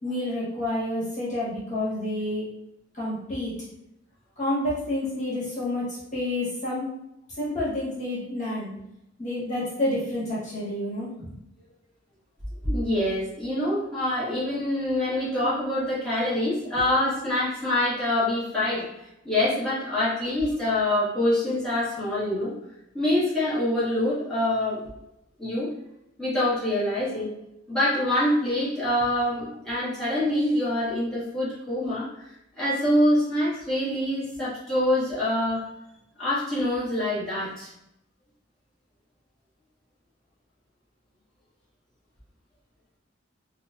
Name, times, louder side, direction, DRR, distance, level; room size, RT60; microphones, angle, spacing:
voice 1, 0.0-2.5 2.9-3.5 4.4-6.9 7.4-8.7 9.2-11.4, left 1 dB, 40° left, -8 dB, 1.3 m, -29 dB
voice 2, 12.6-22.5 22.9-24.8 25.4-25.7 26.2-27.3 27.7-32.1 32.6-35.7 36.2-37.7, left 1 dB, 5° left, -12 dB, 1.3 m, -25 dB
4.4 x 2.3 x 2.6 m, 0.83 s
head